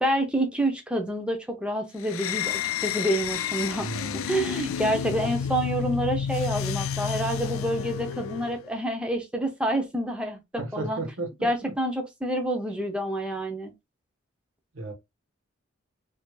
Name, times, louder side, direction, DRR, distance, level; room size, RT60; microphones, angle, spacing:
voice 1, 0.0-3.9 4.1-11.0 11.4-13.7, right 1 dB, 5° right, 0.6 m, -28 dB
sound 1, 2.0-8.6, left 8 dB, 90° left, 0.4 m, -30 dB
voice 2, 3.8-4.3 5.1-5.3 10.6-11.7 14.7-14.9, right 3 dB, 85° right, 1.3 m, -35 dB
4.8 x 2.7 x 2.3 m
head